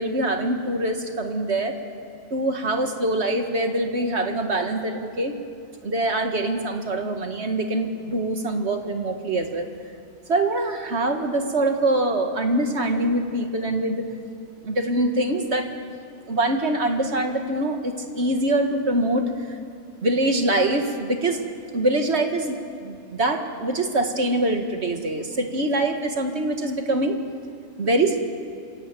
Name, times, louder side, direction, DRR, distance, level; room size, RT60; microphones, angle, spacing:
voice 1, 0.0-1.7 2.3-5.4 5.8-9.7 10.3-14.1 14.6-15.7 16.3-19.2 20.0-21.4 21.7-27.2 27.8-28.2, right 1 dB, 55° right, 5 dB, 1.9 m, -24 dB
27.0 x 15.0 x 9.0 m, 2.4 s
omnidirectional pair, 1.4 m